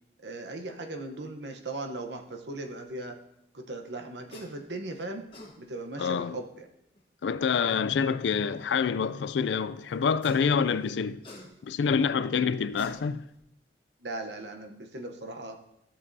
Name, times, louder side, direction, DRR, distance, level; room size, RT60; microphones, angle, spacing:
voice 1, 0.2-3.2 3.5-5.2 5.6-6.7 14.0-15.6, right 2 dB, 75° right, 0.9 m, -38 dB
sound 1, 4.3-4.5 5.1-5.5 7.0-7.1 10.0-10.5 10.8-11.8 12.6-13.4, left 2 dB, 30° left, 1.3 m, -46 dB
voice 2, 6.0-6.4 7.2-11.2 11.6-13.2, left 6 dB, 80° left, 0.4 m, -27 dB
13.5 x 7.3 x 2.7 m
head